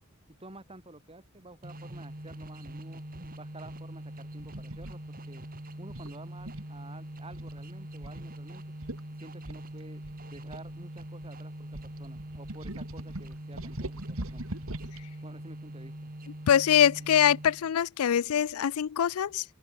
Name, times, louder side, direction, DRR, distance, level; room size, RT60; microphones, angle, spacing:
voice 1, 0.3-3.0 3.4-5.4 5.8-8.6 9.2-10.0 10.3-14.5 15.2-16.1, right 2 dB, 25° right, 5.1 m, -50 dB
sound 1, 1.6-17.8, right 1 dB, 40° right, 2.7 m, -43 dB
sound 2, 4.4-5.0 5.9-6.8 7.3-7.6 8.0-8.2 8.5-8.6 8.8-9.0 9.5-11.3 11.7-15.0, right 1 dB, 70° right, 2.8 m, -41 dB
voice 2, 16.5-19.4, left 9 dB, 85° left, 0.4 m, -23 dB
open air
head